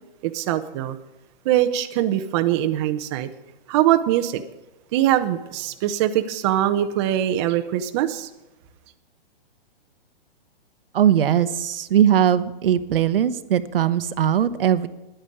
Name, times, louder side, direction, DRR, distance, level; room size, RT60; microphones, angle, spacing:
voice 1, 0.2-1.0 1.4-3.3 3.7-4.4 4.9-8.3, right 12 dB, 30° right, 7 dB, 0.7 m, -22 dB
voice 2, 10.9-14.9, right 10 dB, 70° right, 12 dB, 1.0 m, -20 dB
10.0 x 9.1 x 9.8 m, 1.0 s
hypercardioid pair, 155°, 29 cm